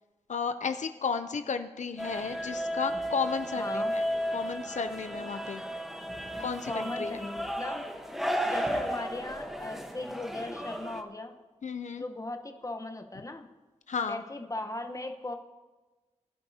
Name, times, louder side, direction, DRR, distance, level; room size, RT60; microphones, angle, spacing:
voice 1, 0.3-4.0 4.3-5.6 6.4-7.2 11.6-12.0 13.9-14.2, left 5 dB, 85° left, 9 dB, 0.6 m, -33 dB
sound 1, 2.0-11.0, equal, 5° right, 1.1 m, -34 dB
voice 2, 3.6-4.0 6.6-7.9 8.4-11.3 12.0-13.5 14.1-15.3, left 2 dB, 30° left, 5 dB, 1.1 m, -38 dB
21.5 x 11.0 x 2.8 m, 1.2 s
wide cardioid pair, 100°, 12 cm